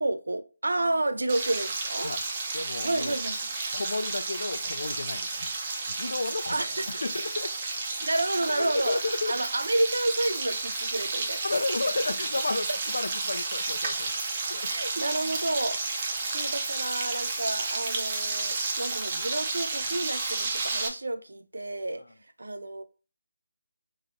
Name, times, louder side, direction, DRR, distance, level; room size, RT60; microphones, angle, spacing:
voice 1, 0.0-2.1 2.8-3.4 6.5-7.0 8.0-9.0 9.3-11.6 14.7-22.0 22.4-22.8, right 2 dB, 75° right, 0.5 m, -30 dB
Frying (food), 1.3-20.9, right 3 dB, 30° right, 0.7 m, -32 dB
voice 2, 2.5-3.2 3.7-5.5 5.9-7.5 8.5-9.4 11.4-14.1 14.5-14.7, left 2 dB, 70° left, 0.4 m, -32 dB
4.7 x 3.2 x 2.6 m
figure-of-eight pair, 160°, 0 cm